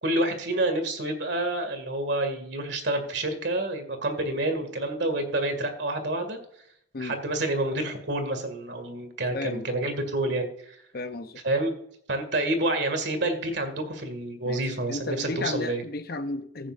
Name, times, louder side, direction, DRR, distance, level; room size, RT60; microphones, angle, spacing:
voice 1, 0.0-6.4 7.0-10.8 11.4-11.7 12.1-15.8, right 1 dB, 60° right, 7 dB, 2.1 m, -28 dB
voice 2, 9.3-9.7 10.9-11.4 14.4-16.7, left 2 dB, 50° left, 10 dB, 0.7 m, -34 dB
15.5 x 8.7 x 2.5 m, 0.70 s
head